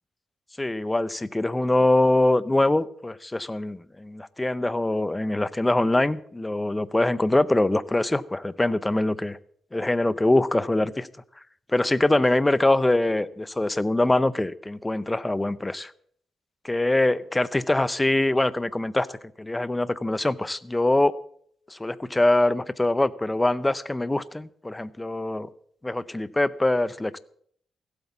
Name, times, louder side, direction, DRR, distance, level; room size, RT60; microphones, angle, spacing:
voice 1, 0.6-9.4 9.7-11.1 11.7-15.9 16.6-21.1 21.7-25.5 25.8-27.2, left 2 dB, 15° left, 0.6 m, -23 dB
16.0 x 8.1 x 7.2 m
cardioid pair, 105°, 0 cm